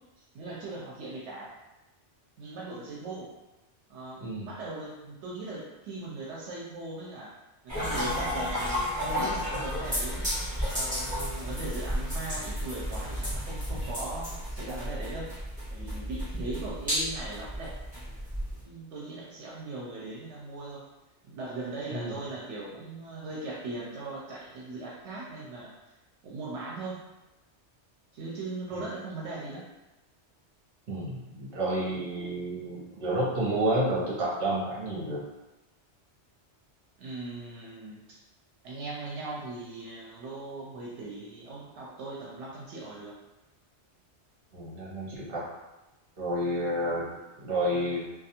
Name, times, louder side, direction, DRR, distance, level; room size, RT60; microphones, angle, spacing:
voice 1, 0.2-1.5 2.4-3.3 3.9-7.3 7.6-10.3 10.7-15.3 15.7-17.8 18.6-20.8 21.2-25.7 26.2-27.0 28.1-29.6 37.0-38.2 38.6-43.1, right 2 dB, 80° right, -5 dB, 0.9 m, -39 dB
sound 1, 7.7-18.6, equal, 5° right, 1.2 m, -32 dB
voice 2, 30.9-35.2 44.5-45.4 46.2-47.1 47.4-48.0, right 1 dB, 55° right, -6 dB, 1.0 m, -30 dB
2.4 x 2.2 x 2.8 m, 1.0 s
omnidirectional pair, 1.2 m